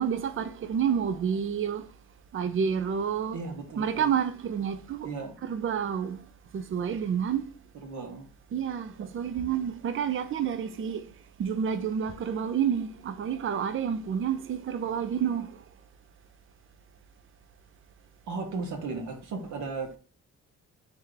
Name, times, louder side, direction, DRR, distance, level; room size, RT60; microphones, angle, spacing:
voice 1, 0.0-1.8 2.3-3.4 3.8-5.1 5.4-6.2 6.5-7.5 8.5-11.0 11.4-15.5, right 8 dB, 45° right, 0.5 m, -29 dB
voice 2, 3.3-4.1 5.0-5.3 7.7-8.3 18.3-20.0, right 4 dB, 70° right, 1.1 m, -36 dB
3.4 x 3.0 x 3.8 m
cardioid pair, 90°, 30 cm